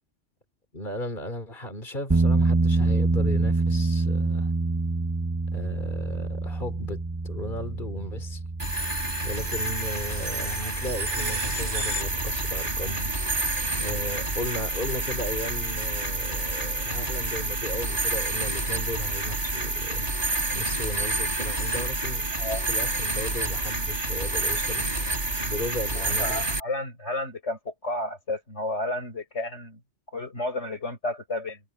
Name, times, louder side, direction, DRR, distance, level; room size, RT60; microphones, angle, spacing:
voice 1, 0.7-4.5 5.5-8.4 9.2-13.2 13.8-20.1 20.5-22.3 22.7-24.9 25.4-26.4, left 1 dB, 40° left, 3.3 m, -35 dB
sound 1, 2.1-14.4, right 3 dB, 20° right, 0.6 m, -28 dB
sound 2, 8.6-26.6, right 2 dB, 45° right, 3.6 m, -28 dB
voice 2, 26.0-29.8 30.1-31.6, left 2 dB, 70° left, 7.6 m, -32 dB
omnidirectional pair, 1.2 m